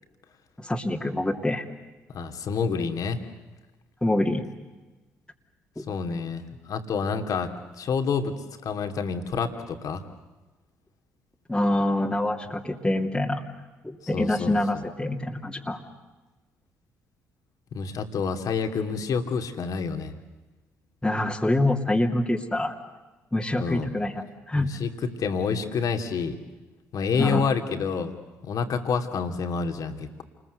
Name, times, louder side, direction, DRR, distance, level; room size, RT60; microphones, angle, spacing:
voice 1, 0.6-1.6 4.0-4.4 5.8-5.9 11.5-13.4 13.8-15.8 21.0-22.7 23.3-24.7 27.2-27.4, left 1 dB, 10° left, -1 dB, 2.7 m, -25 dB
voice 2, 2.1-3.2 5.9-10.0 14.1-14.8 17.7-20.1 23.6-23.9 24.6-26.4 26.9-28.2 28.4-30.2, left 5 dB, 60° left, 6 dB, 2.7 m, -28 dB
28.5 x 21.0 x 8.1 m, 1.2 s
hypercardioid pair, 55°, 7 cm